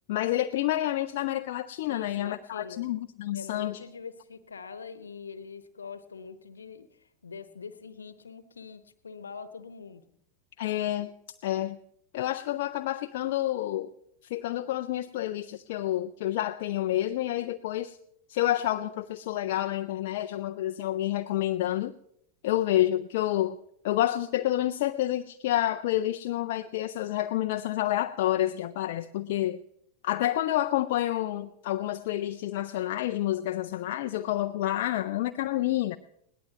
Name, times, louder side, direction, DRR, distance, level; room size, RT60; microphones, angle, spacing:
voice 1, 0.1-3.8 10.6-11.1 11.4-11.8 12.1-13.9 14.3-18.0 18.3-21.9 22.4-23.6 23.8-29.6 30.0-36.0, left 14 dB, 50° left, 7 dB, 0.4 m, -29 dB
voice 2, 1.9-2.9 3.3-10.0, left 5 dB, 75° left, 14 dB, 1.0 m, -43 dB
20.5 x 18.0 x 3.0 m, 0.77 s
figure-of-eight pair, 90°, 0 cm